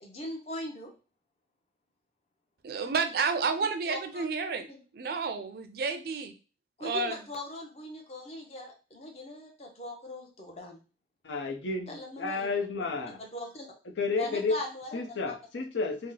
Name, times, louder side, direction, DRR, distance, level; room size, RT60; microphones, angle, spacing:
voice 1, 0.0-0.9 3.9-4.3 4.7-4.8 6.8-10.8 11.9-12.5 12.7-12.8 13.2-13.7 14.2-15.0, left 1 dB, 35° left, 2 dB, 0.7 m, -40 dB
voice 2, 2.6-6.3 6.8-7.2, right 4 dB, 55° right, 8 dB, 0.4 m, -31 dB
voice 3, 11.2-13.2 14.0-14.6 14.9-16.1, left 3 dB, 85° left, 2 dB, 0.6 m, -31 dB
2.9 x 2.1 x 3.7 m, 0.34 s
head